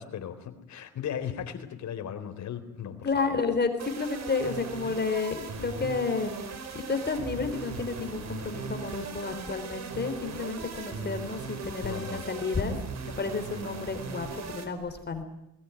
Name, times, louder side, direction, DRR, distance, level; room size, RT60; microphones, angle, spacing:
voice 1, 0.0-3.4 11.8-12.6, left 8 dB, 65° left, 7 dB, 3.7 m, -37 dB
voice 2, 3.0-6.3 6.9-12.8 13.2-15.2, left 4 dB, 35° left, 7 dB, 3.9 m, -31 dB
sound 1, 3.8-14.7, right 5 dB, 60° right, 4.3 m, -39 dB
20.5 x 19.0 x 9.8 m, 0.84 s
cardioid pair, 90°, 30 cm